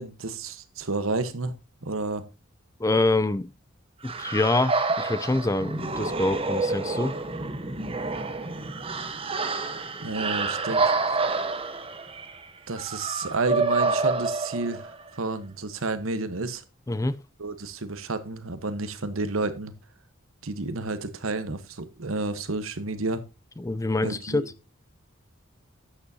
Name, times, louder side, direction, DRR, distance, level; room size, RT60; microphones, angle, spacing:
voice 1, 0.0-1.5 1.8-2.2 10.0-11.2 12.7-16.6 17.4-19.7 20.4-23.2 24.0-24.5, right 3 dB, 90° right, 1.2 m, -30 dB
voice 2, 2.8-3.5 4.0-7.1 16.9-17.2 23.6-24.4, left 2 dB, 15° left, 0.4 m, -25 dB
sound 1, 4.0-15.1, right 3 dB, 25° right, 1.0 m, -28 dB
11.5 x 8.4 x 2.7 m
head